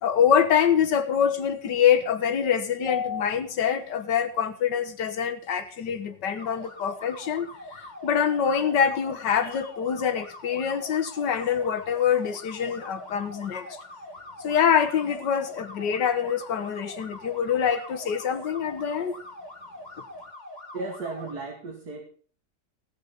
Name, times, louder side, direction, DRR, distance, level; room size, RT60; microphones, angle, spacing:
voice 1, 0.0-13.8 14.4-19.1, left 8 dB, 75° left, 1.9 m, -25 dB
sound 1, 6.3-21.3, left 1 dB, 25° left, 3.0 m, -43 dB
voice 2, 20.7-22.0, right 3 dB, 60° right, 2.7 m, -35 dB
17.5 x 6.5 x 6.7 m
omnidirectional pair, 1.9 m